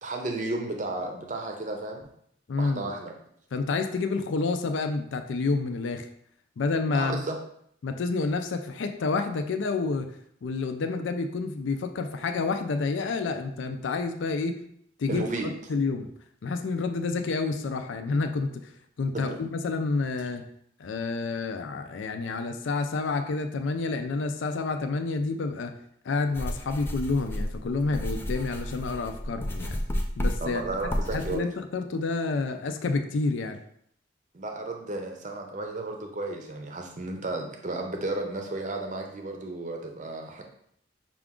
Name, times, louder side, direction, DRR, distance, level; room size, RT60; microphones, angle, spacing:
voice 1, 0.0-2.1 2.6-3.1 6.9-7.4 15.1-15.5 19.1-19.4 30.4-31.4 34.3-40.4, right 2 dB, 40° right, 3 dB, 0.6 m, -33 dB
voice 2, 2.5-2.9 3.5-6.1 6.6-7.2 7.8-10.1 10.4-14.6 15.0-15.2 15.7-16.1 16.4-18.7 19.0-20.5 20.8-25.8 26.0-29.8 30.2-30.6 31.1-33.6, left 3 dB, 80° left, 7 dB, 0.4 m, -29 dB
sound 1, 26.3-31.4, equal, 10° left, 0.3 m, -32 dB
5.8 x 2.4 x 3.6 m, 0.69 s
head